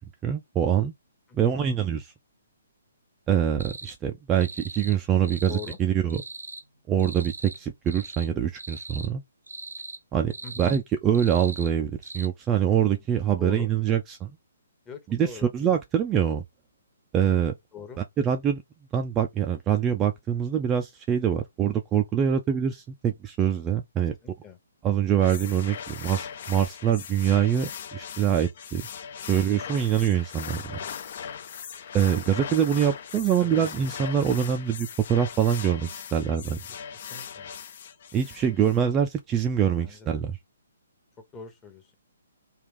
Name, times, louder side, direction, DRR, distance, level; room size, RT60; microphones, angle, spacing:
voice 1, 0.2-0.9 1.3-2.1 3.3-6.2 6.9-9.2 10.1-10.3 10.6-14.4 15.1-16.4 17.1-17.5 18.2-18.6 18.9-24.2 24.8-28.8 29.2-30.8 31.9-36.6 38.1-40.4, right 9 dB, 20° right, 0.4 m, -24 dB
voice 2, 1.3-1.6 5.5-5.8 10.4-10.8 13.4-13.7 14.9-15.5 17.7-18.0 24.2-24.6 30.8-31.0 33.4-33.6 36.9-37.5 39.8-40.2 41.3-42.0, left 6 dB, 15° left, 0.9 m, -42 dB
sound 1, 3.6-3.9 4.4-5.0 5.2-5.8 6.1-6.6 7.0-7.6 7.9-8.3 8.6-9.1 9.5-10.0 10.3-10.8 11.1-11.7 12.0-12.3, right 3 dB, 90° right, 0.5 m, -40 dB
sound 2, 25.2-38.8, left 8 dB, 50° left, 0.5 m, -39 dB
3.3 x 2.4 x 3.5 m
hypercardioid pair, 135°, 0 cm